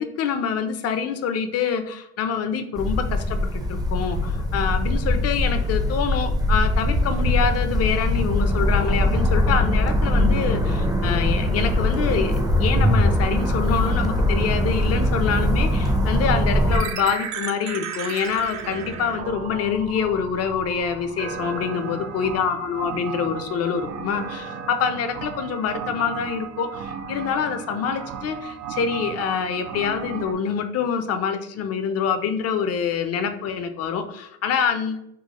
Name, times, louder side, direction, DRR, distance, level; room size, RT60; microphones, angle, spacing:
voice 1, 0.0-35.0, left 7 dB, 50° left, 8 dB, 0.5 m, -26 dB
sound 1, 2.8-16.8, left 1 dB, 10° right, 0.5 m, -21 dB
sound 2, 16.7-30.3, right 7 dB, 60° right, 0.5 m, -34 dB
4.5 x 2.0 x 2.9 m, 0.76 s
cardioid pair, 100°, 32 cm